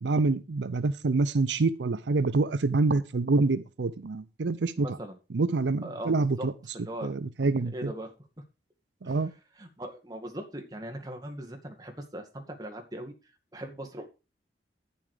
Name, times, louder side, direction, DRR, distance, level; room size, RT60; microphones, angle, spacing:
voice 1, 0.0-4.9 5.3-6.5 7.0-7.9 9.0-9.3, right 3 dB, 85° right, 14 dB, 0.6 m, -26 dB
voice 2, 4.8-5.2 5.8-6.5 6.7-7.1 7.7-8.1 9.0-9.2 9.6-13.1 13.5-14.1, right 1 dB, 20° right, 3 dB, 2.1 m, -39 dB
10.0 x 7.2 x 5.0 m, 0.30 s
head